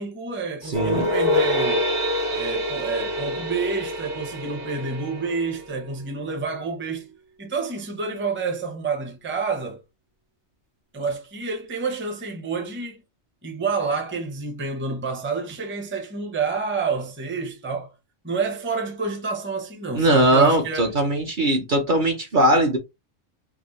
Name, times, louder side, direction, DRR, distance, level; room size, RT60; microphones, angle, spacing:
voice 1, 0.0-1.9 2.3-7.1 7.4-9.8 10.9-13.0 13.4-17.9 18.2-20.9, right 4 dB, 10° right, 0.6 m, -28 dB
voice 2, 0.6-1.1 19.9-22.8, right 1 dB, 45° right, 0.8 m, -20 dB
sound 1, 0.7-6.0, left 1 dB, 65° right, 1.7 m, -26 dB
4.7 x 2.0 x 3.0 m
omnidirectional pair, 1.3 m